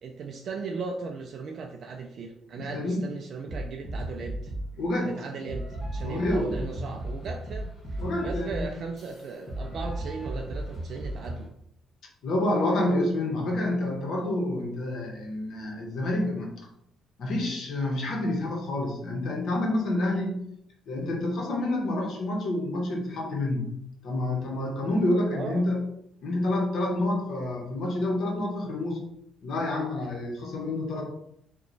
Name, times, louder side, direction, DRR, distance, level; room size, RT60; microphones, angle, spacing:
voice 1, 0.0-4.5 5.0-11.5 25.3-25.7, right 4 dB, 50° right, 3 dB, 0.3 m, -37 dB
voice 2, 2.6-3.0 4.8-5.1 6.0-6.9 8.0-8.6 12.2-16.5 17.2-20.4 20.9-23.7 24.0-25.8 26.2-29.0 29.4-31.0, left 1 dB, 65° left, 0 dB, 0.9 m, -28 dB
sound 1, 3.5-4.8 5.5-11.5, right 1 dB, 35° left, 0.9 m, -35 dB
2.9 x 2.2 x 3.9 m, 0.75 s
cardioid pair, 115°, 0 cm